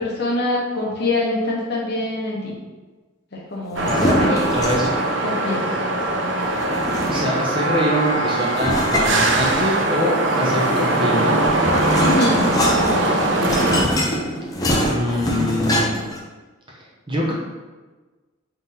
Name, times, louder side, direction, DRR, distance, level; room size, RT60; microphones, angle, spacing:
voice 1, 0.0-2.5 3.3-4.5 5.2-5.6 12.0-13.0, left 2 dB, 55° left, -3 dB, 0.9 m, -24 dB
sound 1, 3.7-5.1 6.5-7.5 8.5-9.9 11.1-16.2, equal, 20° left, 0.5 m, -24 dB
voice 2, 3.8-4.9 7.1-11.3 14.8-16.2 17.1-17.3, left 1 dB, 25° right, -4 dB, 0.7 m, -24 dB
sound 2, 3.8-13.8, right 2 dB, 65° right, 0.5 m, -21 dB
3.8 x 3.8 x 2.8 m, 1.3 s
head